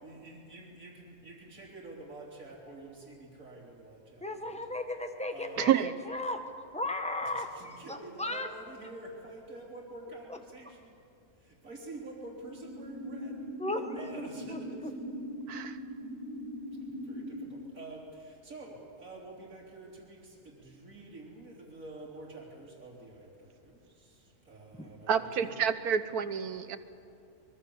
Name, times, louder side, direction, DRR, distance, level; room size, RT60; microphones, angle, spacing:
voice 1, 0.0-4.8 5.3-5.7 7.2-10.9 11.4-13.5 13.9-15.2 16.8-25.5, right 2 dB, 65° right, -5 dB, 3.8 m, -48 dB
voice 2, 4.2-6.4 6.7-8.5 10.3-10.4 13.6-14.6 24.8-24.9, left 2 dB, 5° left, 5 dB, 1.5 m, -36 dB
voice 3, 5.6-5.9 15.5-15.8 25.1-26.8, right 8 dB, 80° right, 10 dB, 1.5 m, -28 dB
sound 1, 12.4-17.4, equal, 45° left, 8.6 m, -41 dB
24.0 x 22.0 x 7.0 m, 2.6 s
omnidirectional pair, 1.6 m